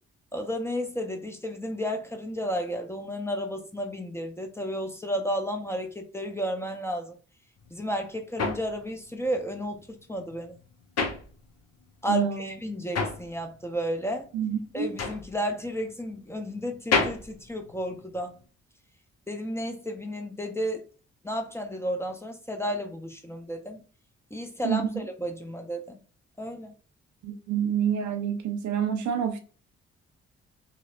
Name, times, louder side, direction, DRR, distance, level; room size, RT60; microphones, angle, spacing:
voice 1, 0.3-7.2 7.7-10.6 12.0-14.3 14.7-18.3 19.3-20.9 21.2-23.8 24.3-26.0 26.4-26.7, equal, 10° left, 0.6 m, -32 dB
sound 1, 7.6-11.9 12.2-18.4, left 4 dB, 55° left, 0.8 m, -32 dB
voice 2, 12.1-12.5 14.3-14.9 24.6-24.9 27.2-29.4, right 8 dB, 65° right, 0.6 m, -27 dB
2.8 x 2.0 x 2.4 m
hypercardioid pair, 40°, 32 cm